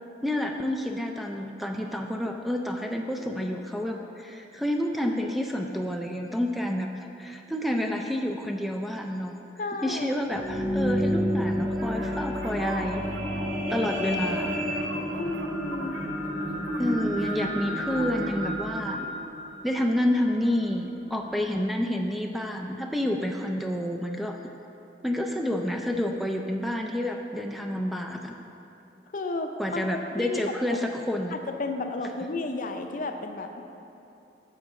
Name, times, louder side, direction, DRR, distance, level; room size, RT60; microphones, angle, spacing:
voice 1, 0.2-9.3 9.8-13.0 13.7-14.6 16.8-19.1 19.6-24.4 25.0-28.3 29.6-31.4, left 1 dB, ahead, 2 dB, 0.3 m, -29 dB
voice 2, 9.6-10.1 15.1-16.0 29.1-30.4 30.7-30.8 31.3-33.6, left 2 dB, 50° left, 5 dB, 0.6 m, -33 dB
sound 1, 10.2-20.6 21.2-21.3, equal, 35° right, 2.1 m, -30 dB
sound 2, 11.8-17.4 17.6-18.3, right 2 dB, 75° right, 0.7 m, -43 dB
9.7 x 7.1 x 3.7 m, 2.8 s
head